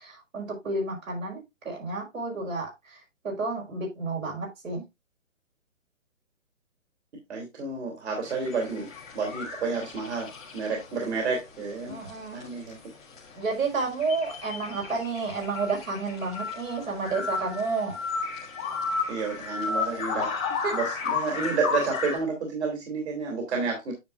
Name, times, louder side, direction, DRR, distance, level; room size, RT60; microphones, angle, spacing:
voice 1, 0.0-4.8 11.9-12.4 13.4-18.0 20.6-20.7, right 3 dB, 80° right, 0 dB, 5.2 m, -31 dB
voice 2, 7.3-8.9 9.1-10.3 10.5-12.0 12.3-12.8 19.1-20.4 20.7-23.9, right 4 dB, 55° right, 1 dB, 2.8 m, -30 dB
sound 1, 8.3-11.1 11.3-11.4 11.9-12.1 12.4-12.5 12.7-12.8 13.1-22.2, left 5 dB, 5° left, 0.5 m, -33 dB
9.4 x 6.8 x 2.4 m, 0.21 s
hypercardioid pair, 155°, 39 cm